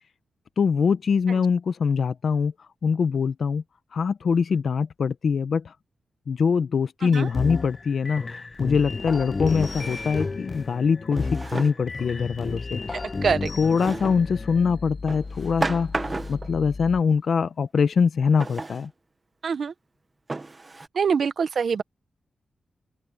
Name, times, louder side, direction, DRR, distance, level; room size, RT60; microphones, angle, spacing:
voice 1, 0.6-2.5 2.8-3.6 3.9-5.7 6.3-13.0 13.6-18.9, left 6 dB, 65° left, 0.8 m, -23 dB
Piano, 7.1-8.4 8.6-8.7, right 7 dB, 85° right, 6.0 m, -50 dB
sound 1, 7.2-17.0, left 3 dB, 35° left, 0.3 m, -33 dB
Drawer open or close, 8.2-8.3 9.5-10.4 11.1-11.9 13.8-14.3 15.1-16.5 18.4-18.9 19.5-19.6 20.3-20.9, right 3 dB, 25° right, 1.0 m, -33 dB
voice 2, 12.9-13.5 19.4-19.7 20.9-21.8, right 6 dB, 65° right, 0.9 m, -25 dB
open air
wide cardioid pair, 110°, 0 cm